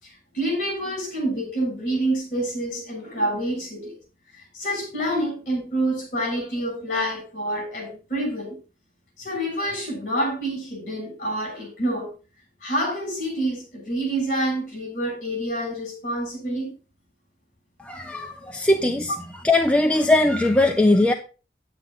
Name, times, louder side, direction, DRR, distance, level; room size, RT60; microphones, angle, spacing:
voice 1, 0.0-4.0 4.3-8.6 9.2-12.1 12.6-16.7 19.1-19.2, right 1 dB, 45° left, 1 dB, 6.5 m, -27 dB
voice 2, 17.9-19.1 19.4-21.1, left 2 dB, 5° left, 3 dB, 0.6 m, -19 dB
9.7 x 8.7 x 3.9 m, 0.33 s
head